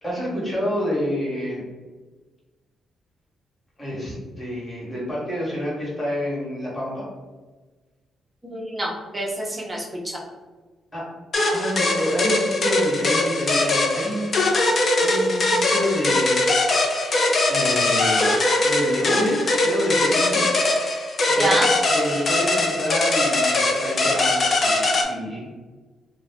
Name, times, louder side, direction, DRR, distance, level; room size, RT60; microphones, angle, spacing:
voice 1, 0.0-1.6 3.8-7.0 10.9-11.0 11.5-14.5 15.0-16.8 17.5-18.3 18.6-20.6 21.3-21.6 21.9-25.5, equal, 25° left, -6 dB, 1.3 m, -28 dB
voice 2, 8.4-10.2 21.4-21.7, right 1 dB, 15° right, -3 dB, 0.7 m, -26 dB
sound 1, 11.3-25.0, left 2 dB, 45° left, 0.4 m, -21 dB
2.4 x 2.1 x 3.4 m, 1.3 s
cardioid pair, 115°, 0 cm